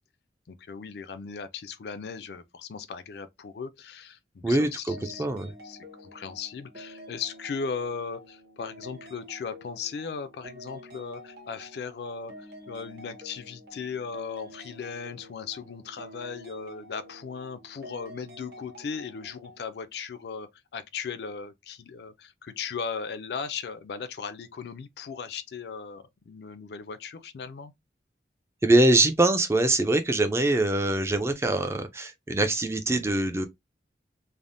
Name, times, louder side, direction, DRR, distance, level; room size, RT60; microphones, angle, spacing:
voice 1, 0.5-5.3 5.6-27.7, left 5 dB, 60° left, 0.4 m, -37 dB
voice 2, 4.4-5.5 28.6-33.5, right 2 dB, 15° right, 0.3 m, -23 dB
sound 1, 4.9-19.7, left 1 dB, 60° right, 1.0 m, -48 dB
3.3 x 2.0 x 2.5 m
head